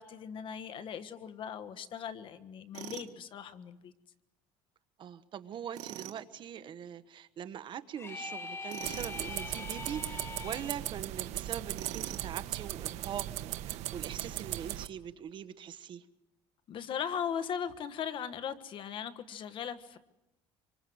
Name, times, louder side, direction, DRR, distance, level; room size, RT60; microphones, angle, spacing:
voice 1, 0.0-3.9 16.7-20.0, left 8 dB, 45° left, 11 dB, 1.5 m, -38 dB
Tools, 2.7-3.1 5.7-6.2 8.7-9.2 11.7-12.3, right 14 dB, 85° right, 1.9 m, -43 dB
voice 2, 5.0-16.0, right 9 dB, 40° right, 12 dB, 1.2 m, -42 dB
sound 1, 8.0-10.7, left 4 dB, 20° left, 1.4 m, -42 dB
sound 2, 8.8-14.9, right 14 dB, 65° right, 1.2 m, -38 dB
26.5 x 24.5 x 7.9 m, 0.94 s
cardioid pair, 145°, 12 cm